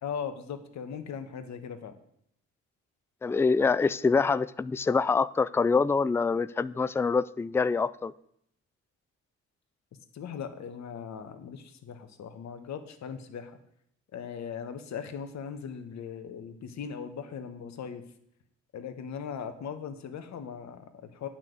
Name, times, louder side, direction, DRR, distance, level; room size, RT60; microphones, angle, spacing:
voice 1, 0.0-1.9 10.1-13.6 14.1-18.0 18.7-21.3, left 7 dB, 65° left, 9 dB, 1.4 m, -39 dB
voice 2, 3.2-8.1, left 4 dB, 10° left, 17 dB, 0.3 m, -25 dB
9.2 x 5.9 x 8.0 m, 0.71 s
cardioid pair, 90°, 30 cm